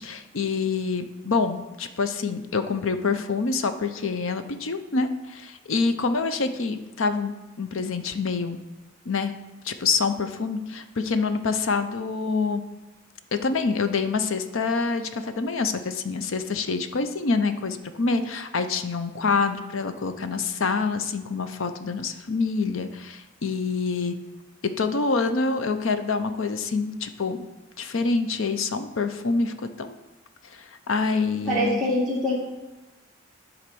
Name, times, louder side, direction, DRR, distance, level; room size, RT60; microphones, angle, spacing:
voice 1, 0.0-7.3 7.6-8.6 9.1-9.3 9.6-12.6 13.3-24.1 24.8-27.5 27.8-29.9 30.5-31.8, left 4 dB, 70° left, 9 dB, 0.6 m, -26 dB
voice 2, 31.4-32.3, left 1 dB, ahead, -10 dB, 1.4 m, -24 dB
11.5 x 3.9 x 6.1 m, 1.1 s
head